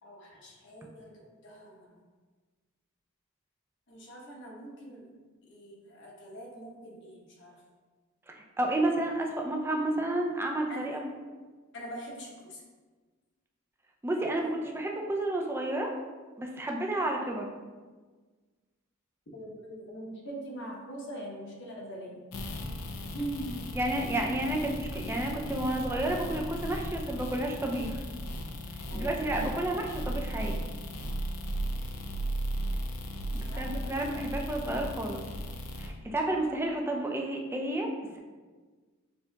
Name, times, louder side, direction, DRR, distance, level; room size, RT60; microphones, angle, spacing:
voice 1, 0.0-1.9 3.9-5.1 5.4-7.6 10.7-11.0 11.7-12.6 19.3-22.2 23.1-23.6 28.9-29.2 33.3-34.0, right 1 dB, 60° left, -2 dB, 1.0 m, -42 dB
voice 2, 8.3-11.0 14.0-15.9 16.4-17.5 23.7-28.0 28.9-30.6 33.3-35.2 35.8-38.2, right 1 dB, 10° right, 1 dB, 0.4 m, -31 dB
sound 1, 22.3-35.9, equal, 85° left, 0.5 m, -36 dB
7.0 x 2.8 x 2.3 m, 1.4 s
head